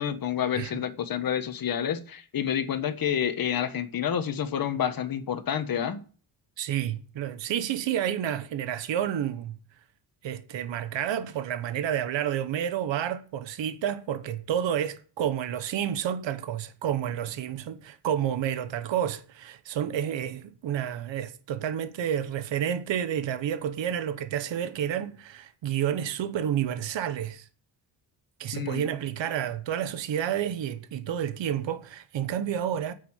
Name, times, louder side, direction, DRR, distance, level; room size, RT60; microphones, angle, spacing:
voice 1, 0.0-6.0 28.5-28.9, left 9 dB, 50° left, 1.3 m, -29 dB
voice 2, 6.6-9.6 10.2-27.5 28.4-32.9, right 10 dB, 70° right, 1.2 m, -30 dB
9.1 x 7.0 x 8.1 m
wide cardioid pair, 155°, 46 cm